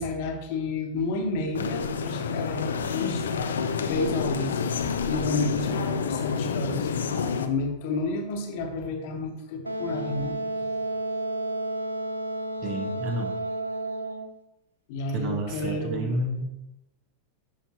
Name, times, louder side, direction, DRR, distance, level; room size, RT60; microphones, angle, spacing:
voice 1, 0.0-3.3 3.8-6.9 7.2-10.5 14.9-16.1, left 2 dB, 50° left, 3 dB, 1.4 m, -31 dB
sound 1, 1.5-7.5, left 6 dB, 65° left, 0.6 m, -28 dB
Wind instrument woodwind instrument, 9.7-14.3, right 1 dB, 85° right, 0.7 m, -31 dB
voice 2, 12.6-13.3 15.1-16.4, right 1 dB, 45° right, 3 dB, 1.6 m, -30 dB
11.0 x 5.7 x 3.0 m, 0.87 s
figure-of-eight pair, 90°, 0 cm